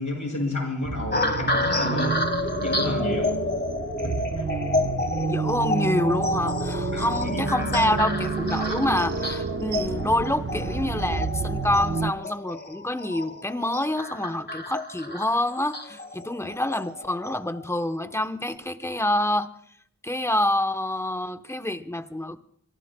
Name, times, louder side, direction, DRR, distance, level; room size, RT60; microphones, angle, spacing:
voice 1, 0.0-2.2 2.6-3.3 4.0-4.5 6.9-7.9 8.7-8.8, left 2 dB, 70° left, 5.6 m, -31 dB
sound 1, 0.8-12.1, right 4 dB, 40° right, 0.7 m, -30 dB
sound 2, 1.1-17.6 18.2-18.5, left 2 dB, 35° left, 1.9 m, -30 dB
voice 2, 5.3-19.5 20.0-22.4, left 1 dB, 10° left, 0.9 m, -27 dB
25.0 x 23.0 x 2.2 m
wide cardioid pair, 65°, 31 cm